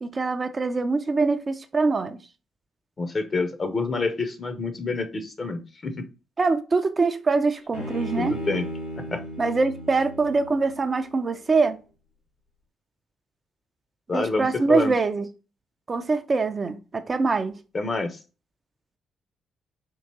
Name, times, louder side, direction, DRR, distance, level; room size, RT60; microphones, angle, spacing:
voice 1, 0.0-2.2 6.4-8.3 9.4-11.8 14.1-15.3 15.9-17.6, right 4 dB, 35° right, 0.4 m, -24 dB
voice 2, 3.0-6.0 8.2-8.6 9.1-9.2 14.1-14.9 17.7-18.2, left 3 dB, 35° left, 0.7 m, -27 dB
Bowed string instrument, 7.7-11.0, equal, 75° left, 2.0 m, -35 dB
4.5 x 2.9 x 2.8 m
figure-of-eight pair, 40°, 0 cm